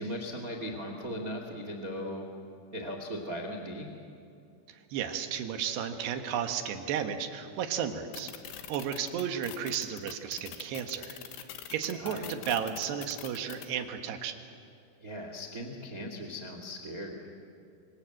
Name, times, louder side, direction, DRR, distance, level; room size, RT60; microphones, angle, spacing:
voice 1, 0.0-2.3 2.7-3.9 11.9-12.3 15.0-17.3, equal, 90° right, 3 dB, 0.7 m, -38 dB
voice 2, 4.7-11.2 11.7-14.4, right 8 dB, 65° right, 6 dB, 3.1 m, -33 dB
sound 1, 8.1-13.7, left 11 dB, 75° left, 3.6 m, -43 dB
27.5 x 24.5 x 7.8 m, 2.6 s
omnidirectional pair, 5.7 m